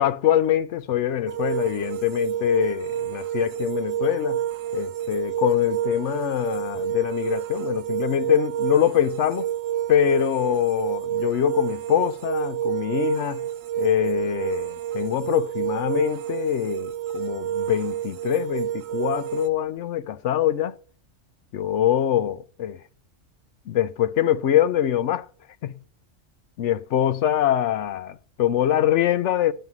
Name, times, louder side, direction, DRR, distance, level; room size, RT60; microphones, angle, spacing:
voice 1, 0.0-4.4 4.7-9.5 9.9-13.4 13.8-20.7 21.5-22.8 23.7-25.3 25.6-25.7 26.6-29.5, left 11 dB, 70° left, 0.9 m, -24 dB
sound 1, 1.3-19.5, right 11 dB, 90° right, 1.1 m, -29 dB
11.0 x 5.7 x 5.7 m
omnidirectional pair, 1.3 m